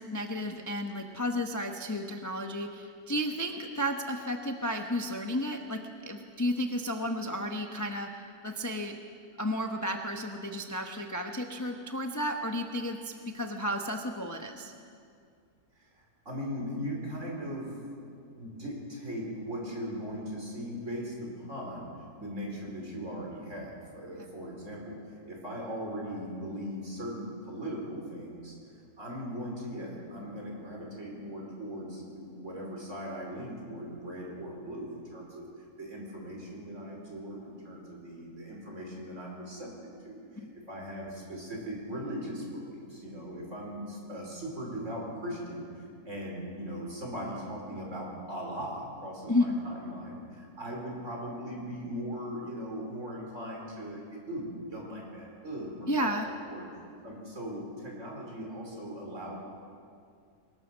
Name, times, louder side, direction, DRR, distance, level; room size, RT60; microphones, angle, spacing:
voice 1, 0.0-8.1 8.4-9.0 9.4-14.7 40.4-40.5 49.3-49.5 55.9-56.3, left 1 dB, 15° left, 3 dB, 0.9 m, -32 dB
voice 2, 16.2-17.8 18.4-21.9 22.2-25.0 25.3-28.5 29.0-59.3, equal, 50° right, -2 dB, 5.1 m, -39 dB
24.0 x 21.0 x 6.3 m, 2.3 s
omnidirectional pair, 1.7 m